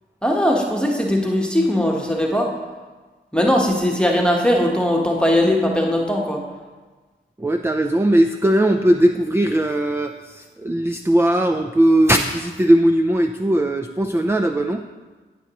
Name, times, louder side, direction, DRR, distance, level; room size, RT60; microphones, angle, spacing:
voice 1, 0.2-2.5 3.3-6.4, left 1 dB, 5° left, -1 dB, 1.2 m, -19 dB
voice 2, 7.4-14.8, right 1 dB, 10° right, 6 dB, 0.5 m, -18 dB
14.0 x 5.8 x 3.0 m, 1.3 s
cardioid pair, 40°, 21 cm